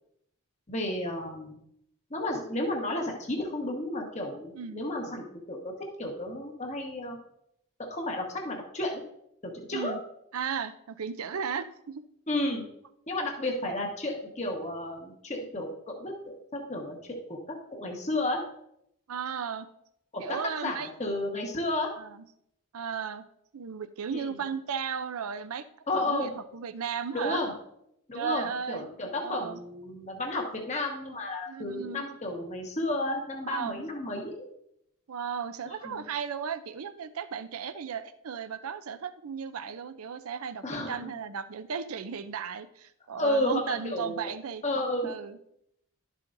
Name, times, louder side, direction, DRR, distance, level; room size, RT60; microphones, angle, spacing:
voice 1, 0.7-1.6 2.1-7.2 7.8-9.0 9.4-9.9 12.3-12.6 13.1-18.4 20.1-21.9 24.1-24.4 25.9-26.3 27.1-27.5 28.1-34.4 35.6-36.0 40.6-41.1 43.2-44.3 44.6-45.1, left 1 dB, 30° left, 1 dB, 1.2 m, -32 dB
voice 2, 4.5-4.9 9.7-10.0 10.3-12.0 19.1-19.7 20.2-20.9 22.0-22.2 22.7-23.3 23.5-25.6 25.9-27.4 28.1-28.9 29.2-29.6 31.5-32.0 33.5-33.8 35.1-44.6 45.0-45.4, right 7 dB, 75° right, 11 dB, 0.5 m, -35 dB
12.0 x 7.5 x 2.6 m, 0.77 s
head